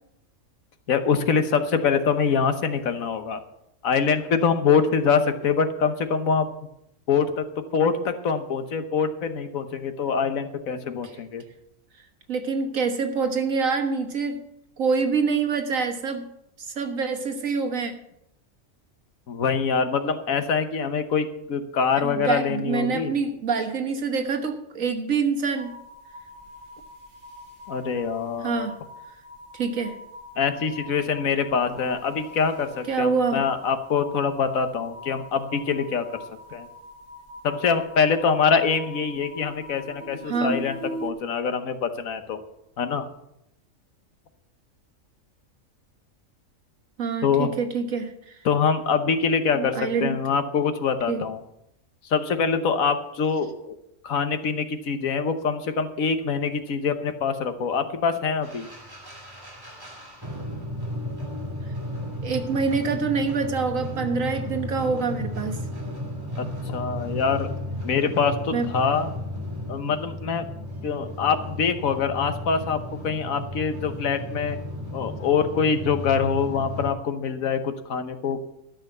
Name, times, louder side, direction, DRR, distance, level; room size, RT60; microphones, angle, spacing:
voice 1, 0.9-3.4 3.8-6.5 7.1-7.5 7.7-11.4 19.3-23.2 27.7-28.7 30.4-36.1 36.5-36.7 37.4-42.4 42.8-43.1 47.2-47.5 48.4-51.4 52.1-53.8 54.0-58.7 66.4-67.5 67.8-69.1 69.7-70.4 70.8-74.6 74.9-78.4, left 6 dB, 80° left, 9 dB, 1.5 m, -24 dB
voice 2, 12.3-14.4 14.8-16.3 16.8-17.9 22.0-25.7 28.4-28.8 29.5-30.0 32.9-33.4 40.3-40.7 47.0-48.4 49.5-50.1 51.1-51.2 62.2-65.6 68.5-68.7, right 5 dB, 75° right, 5 dB, 1.8 m, -26 dB
sound 1, 25.5-41.1, equal, 40° right, 1.7 m, -42 dB
sound 2, 58.4-76.9, left 1 dB, 15° right, 2.7 m, -34 dB
13.0 x 6.4 x 7.8 m, 0.81 s
omnidirectional pair, 1.4 m